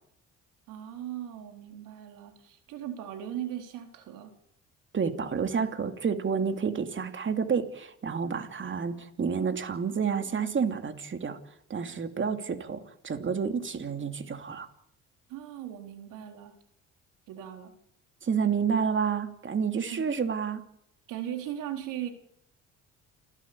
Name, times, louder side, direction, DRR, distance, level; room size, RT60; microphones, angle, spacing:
voice 1, 0.7-4.3 15.3-16.5 17.3-17.7 19.8-20.0 21.1-22.1, right 11 dB, 85° right, 4.2 m, -38 dB
voice 2, 4.9-11.4 11.7-14.7 18.2-20.6, right 6 dB, 40° right, 2.9 m, -29 dB
29.5 x 13.0 x 8.7 m
supercardioid pair, 85°, 31 cm